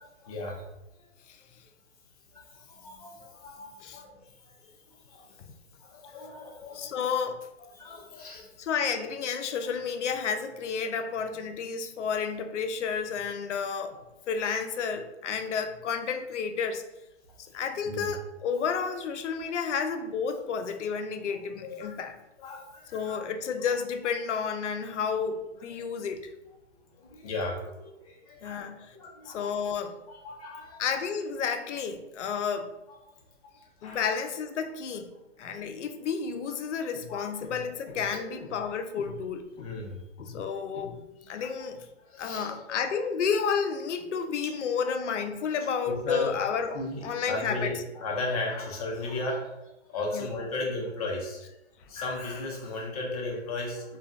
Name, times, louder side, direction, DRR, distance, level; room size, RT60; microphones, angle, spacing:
voice 1, 0.0-0.7 2.3-4.1 5.1-5.4 5.8-7.0 7.7-8.5 17.8-18.1 21.3-22.0 22.4-23.2 25.8-25.9 27.0-28.6 28.9-29.5 30.1-31.0 33.4-33.5 33.8-34.1 36.8-37.3 37.6-38.7 39.6-40.0 41.4-41.5 42.1-42.8 44.9-45.0 45.8-46.4 46.7-51.5 51.9-54.0, left 2 dB, 35° left, -1 dB, 0.6 m, -36 dB
voice 2, 6.7-7.4 8.6-14.0 14.3-16.8 17.4-22.2 22.9-26.2 28.4-28.9 29.3-30.0 30.8-32.7 33.8-35.1 35.4-39.8 40.2-41.0 41.3-41.9 42.2-47.8 50.1-50.3, left 6 dB, 85° left, 7 dB, 0.5 m, -31 dB
2.5 x 2.3 x 2.4 m, 0.93 s
hypercardioid pair, 150°, 35 cm